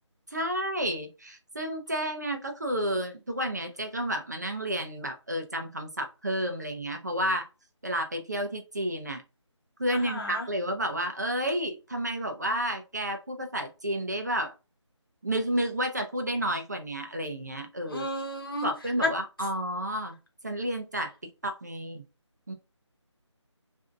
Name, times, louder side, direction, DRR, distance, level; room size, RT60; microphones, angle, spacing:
voice 1, 0.3-7.5 7.8-9.2 9.8-14.5 15.2-18.1 18.6-20.2 20.4-21.1 21.4-22.0 22.5-22.6, equal, 35° right, 0.5 m, -31 dB
voice 2, 9.9-10.5 17.9-18.7 19.0-19.1, left 1 dB, 45° left, 1.1 m, -31 dB
4.1 x 2.6 x 2.4 m
figure-of-eight pair, 175°, 16 cm